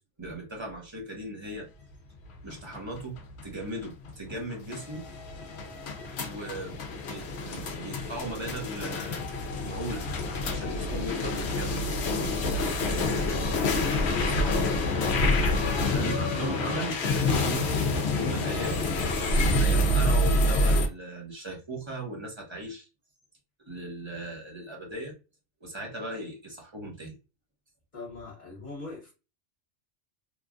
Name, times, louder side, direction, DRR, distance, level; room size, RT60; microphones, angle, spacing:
voice 1, 0.2-1.7 2.4-3.2 3.4-5.1 6.3-6.7 7.1-9.2 9.6-10.1 10.4-11.9 12.1-13.9 15.7-18.8 19.5-22.9 23.6-25.1 25.6-27.2, right 1 dB, 25° right, 1.0 m, -38 dB
sound 1, 2.3-20.9, left 2 dB, 65° left, 0.9 m, -27 dB
voice 2, 13.9-15.3 27.9-29.1, left 3 dB, 45° left, 1.2 m, -41 dB
3.0 x 2.4 x 2.4 m
omnidirectional pair, 1.2 m